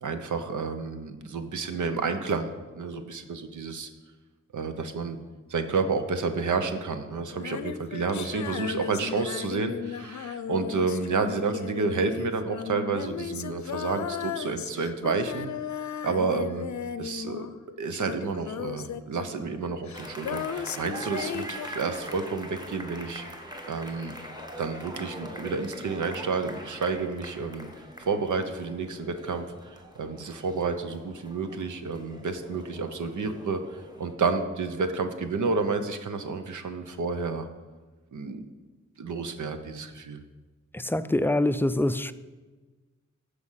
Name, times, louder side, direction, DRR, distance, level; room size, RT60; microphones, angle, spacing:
voice 1, 0.0-3.9 4.5-5.2 5.5-15.5 16.0-16.7 17.0-17.5 17.8-23.3 23.7-24.1 24.6-27.7 28.0-37.5 38.1-38.4 39.0-40.2, right 4 dB, 90° right, 0.9 m, -30 dB
Female singing, 7.3-17.7 17.9-22.4, left 8 dB, 75° left, 0.5 m, -36 dB
sound 1, 19.9-34.2, right 1 dB, 15° right, 1.2 m, -43 dB
voice 2, 40.7-42.1, left 1 dB, 10° left, 0.3 m, -25 dB
14.5 x 5.1 x 5.7 m
wide cardioid pair, 115°, 29 cm